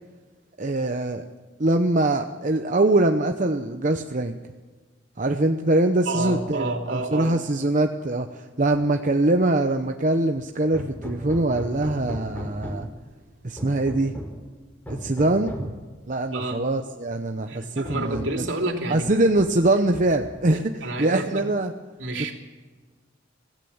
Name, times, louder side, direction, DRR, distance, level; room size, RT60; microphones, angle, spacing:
voice 1, 0.6-1.2 1.6-4.4 5.2-12.9 13.4-14.2 14.9-15.7 16.1-18.4 18.9-21.7, right 2 dB, 40° right, 5 dB, 0.9 m, -23 dB
voice 2, 6.1-7.4 16.3-16.6 17.5-19.1 20.8-21.5 22.0-22.3, right 2 dB, 70° right, 3 dB, 3.4 m, -29 dB
Hammer, 10.7-13.0 13.6-14.4 14.9-15.8 16.8-16.9 17.3-17.4 17.8-18.5 19.0-19.7 19.9-20.6, equal, 10° left, 4.6 m, -37 dB
25.0 x 17.0 x 7.3 m, 1.4 s
head